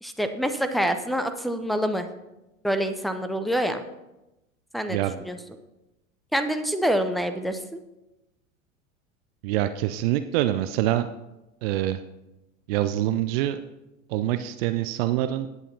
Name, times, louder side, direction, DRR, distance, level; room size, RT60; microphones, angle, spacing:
voice 1, 0.0-2.1 2.6-3.8 4.7-5.0 5.3-5.4 6.3-7.8, equal, ahead, 9 dB, 0.7 m, -26 dB
voice 2, 4.9-5.2 9.4-11.1 11.6-12.0 12.7-13.6 14.1-15.5, right 13 dB, 45° right, 10 dB, 0.6 m, -25 dB
19.5 x 8.2 x 2.8 m, 0.97 s
figure-of-eight pair, 80°, 40 cm